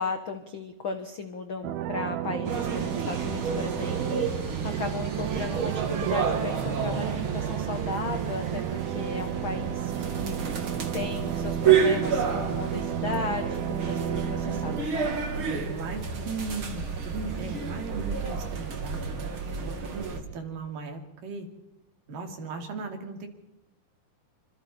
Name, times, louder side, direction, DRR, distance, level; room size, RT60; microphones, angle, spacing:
voice 1, 0.0-15.1 20.0-20.1, left 4 dB, 60° left, 7 dB, 1.3 m, -36 dB
sound 1, 1.6-14.8, right 11 dB, 90° right, 2.8 m, -32 dB
sound 2, 2.4-20.2, right 6 dB, 40° right, 2.6 m, -30 dB
voice 2, 15.5-21.5 22.1-23.3, right 4 dB, 65° right, 4 dB, 4.3 m, -38 dB
26.5 x 26.0 x 4.4 m, 0.95 s
omnidirectional pair, 4.2 m